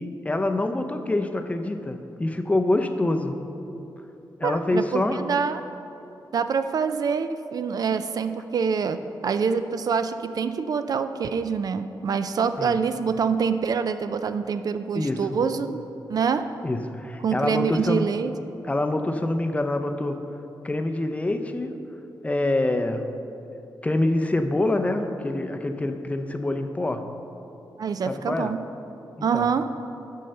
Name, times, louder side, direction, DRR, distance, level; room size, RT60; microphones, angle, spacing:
voice 1, 0.0-3.4 4.4-5.2 12.6-12.8 14.9-15.4 16.6-18.1 18.6-20.2 20.6-21.7 22.2-23.0 23.8-27.0 28.1-28.5 29.2-29.5, left 2 dB, 15° left, 7 dB, 0.5 m, -26 dB
voice 2, 4.4-5.6 6.3-15.8 16.1-16.5 17.2-18.3 27.8-28.6 29.2-29.7, right 6 dB, 55° right, 10 dB, 0.3 m, -25 dB
7.6 x 5.5 x 6.5 m, 2.9 s
wide cardioid pair, 130°, 8 cm